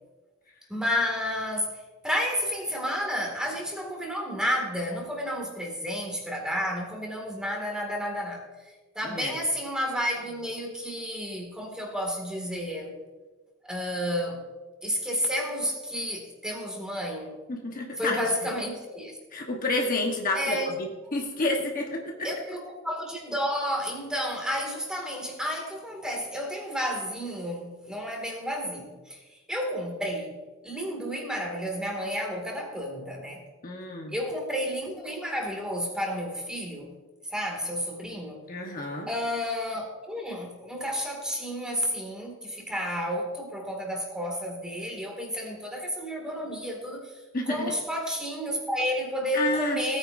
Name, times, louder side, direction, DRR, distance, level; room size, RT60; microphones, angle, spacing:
voice 1, 0.7-12.9 13.6-14.4 14.8-17.4 18.0-19.2 20.3-20.7 22.2-29.2 29.5-30.4 30.6-33.4 34.1-36.9 37.3-38.4 39.1-47.2 47.5-50.0, equal, 5° right, 0 dB, 2.0 m, -31 dB
voice 2, 17.5-18.2 19.3-22.3 33.6-34.1 38.5-39.1 47.3-47.7 49.3-49.8, left 2 dB, 45° left, 1 dB, 1.1 m, -29 dB
17.5 x 9.0 x 2.6 m, 1.2 s
head